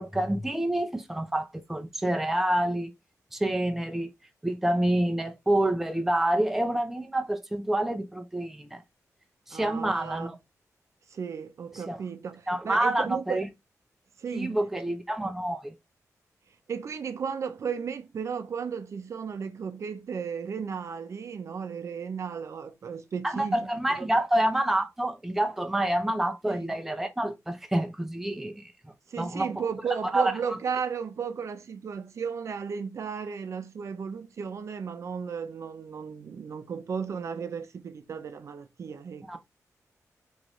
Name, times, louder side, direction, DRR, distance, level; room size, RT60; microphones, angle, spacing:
voice 1, 0.0-2.9 3.3-4.1 4.4-8.8 9.5-10.4 11.9-12.0 12.5-13.5 14.3-15.7 23.2-29.5 30.1-30.3 39.3-39.4, right 1 dB, 5° right, 0.4 m, -27 dB
voice 2, 9.5-10.4 11.1-13.4 14.2-14.6 16.5-23.7 24.0-24.1 26.5-26.7 29.1-39.4, right 6 dB, 55° right, 0.5 m, -35 dB
3.9 x 3.0 x 3.0 m
wide cardioid pair, 165°, 6 cm